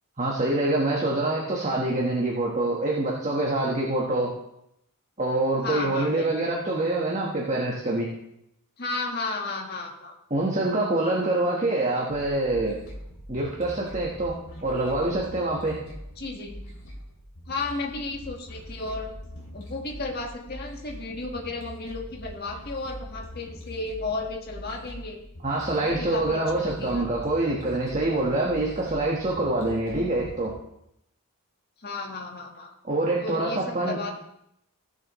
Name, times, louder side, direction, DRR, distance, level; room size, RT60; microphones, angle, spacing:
voice 1, 0.2-4.3 5.2-8.1 10.3-12.8 13.3-14.3 14.6-15.8 25.4-30.5 32.8-34.0, right 2 dB, 30° right, -3 dB, 1.3 m, -25 dB
voice 2, 5.6-6.5 8.8-10.1 16.2-16.6 17.5-19.1 19.5-25.2 25.8-27.1 31.8-32.7 33.2-34.1, left 3 dB, 45° left, 1 dB, 1.6 m, -33 dB
sound 1, 12.1-30.5, equal, 75° left, 2.8 m, -42 dB
16.0 x 6.8 x 3.1 m, 0.79 s
head